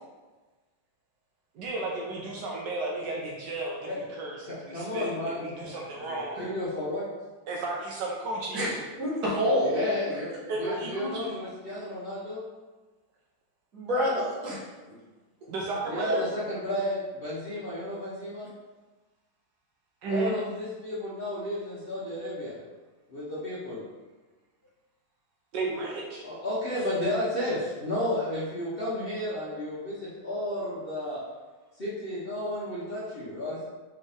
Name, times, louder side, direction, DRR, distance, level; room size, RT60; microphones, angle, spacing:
voice 1, 1.5-3.8 4.1-6.4 7.5-8.7 10.5-11.4 15.5-16.2 20.0-20.4 25.5-26.2, right 2 dB, 75° right, -2 dB, 1.2 m, -33 dB
voice 2, 4.5-6.1 6.4-7.0 9.4-12.4 14.9-15.0 15.9-18.5 20.1-22.6 23.1-23.8 26.2-31.2 31.8-33.6, left 1 dB, 40° left, -10 dB, 0.9 m, -32 dB
voice 3, 8.5-9.7 10.6-10.8 13.7-14.6, equal, 55° right, -6 dB, 1.7 m, -27 dB
4.2 x 3.5 x 3.4 m, 1.2 s
omnidirectional pair, 2.1 m